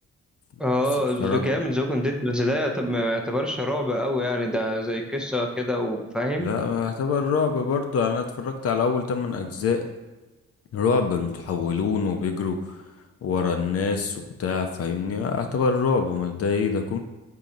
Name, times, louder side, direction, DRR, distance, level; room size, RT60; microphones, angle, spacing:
voice 1, 0.6-6.5, left 1 dB, 5° right, 1 dB, 0.6 m, -25 dB
voice 2, 6.4-9.8 10.7-12.8 13.2-17.0, left 5 dB, 50° left, 5 dB, 0.6 m, -25 dB
3.9 x 2.8 x 4.8 m, 1.2 s
cardioid pair, 90°, 30 cm